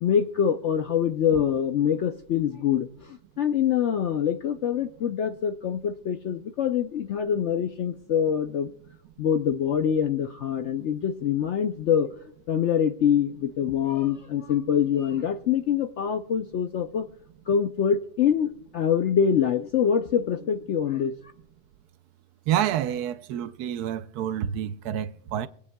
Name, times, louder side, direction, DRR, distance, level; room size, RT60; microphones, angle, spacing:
voice 1, 0.0-8.7 9.2-12.1 12.5-17.1 17.5-21.1, left 8 dB, 70° left, 0.7 m, -25 dB
voice 2, 22.5-25.5, right 10 dB, 75° right, 1.0 m, -28 dB
23.5 x 8.4 x 2.2 m
omnidirectional pair, 1.7 m